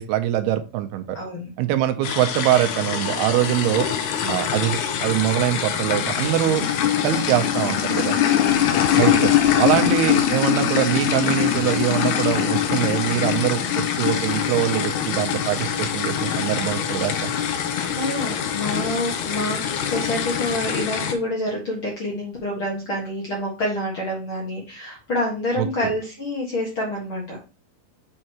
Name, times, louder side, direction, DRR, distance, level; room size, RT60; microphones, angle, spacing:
voice 1, 0.0-1.2 1.6-3.9 4.3-6.7 7.0-8.2 9.0-17.3 25.6-25.7, right 13 dB, 90° right, 9 dB, 2.7 m, -23 dB
voice 2, 1.1-1.5 4.2-4.5 8.3-8.9 9.7-9.9 17.9-27.4, left 1 dB, 50° left, -2 dB, 1.6 m, -27 dB
sound 1, 2.0-21.1, left 10 dB, 80° left, 1.8 m, -23 dB
sound 2, 3.3-20.5, equal, 30° left, 0.9 m, -40 dB
7.7 x 5.6 x 3.0 m, 0.32 s
omnidirectional pair, 4.6 m